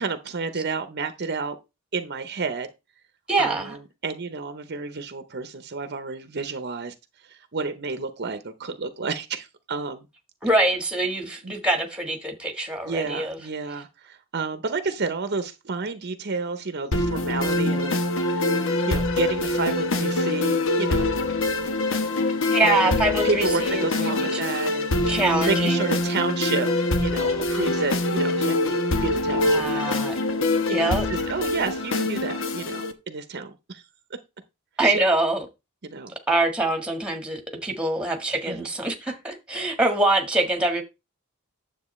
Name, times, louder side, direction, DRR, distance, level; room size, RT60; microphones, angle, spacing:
voice 1, 0.0-1.6 1.9-2.7 3.4-6.9 7.3-10.1 11.4-11.5 12.8-21.1 22.6-26.7 27.0-28.8 29.0-29.9 30.7-33.8 34.8-35.0 35.8-36.1 38.5-38.7, right 4 dB, 50° right, 0.8 m, -30 dB
voice 2, 3.3-3.8 10.4-13.4 22.5-24.4 25.1-25.8 29.4-30.1 30.7-31.1 34.8-35.4 36.3-40.8, right 2 dB, 5° right, 1.5 m, -24 dB
sound 1, 16.9-32.9, left 2 dB, 60° left, 1.0 m, -24 dB
9.7 x 7.5 x 3.2 m
head